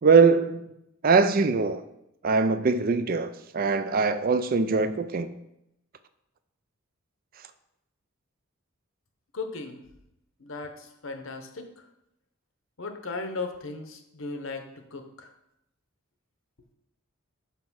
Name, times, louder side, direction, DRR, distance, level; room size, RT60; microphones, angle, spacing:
voice 1, 0.0-0.7 1.0-1.8 2.2-5.4, right 4 dB, 45° right, 0.4 m, -22 dB
voice 2, 9.3-9.8 10.4-11.8 12.8-14.6 14.9-15.3, left 3 dB, 70° left, 0.9 m, -36 dB
5.8 x 5.1 x 6.1 m
head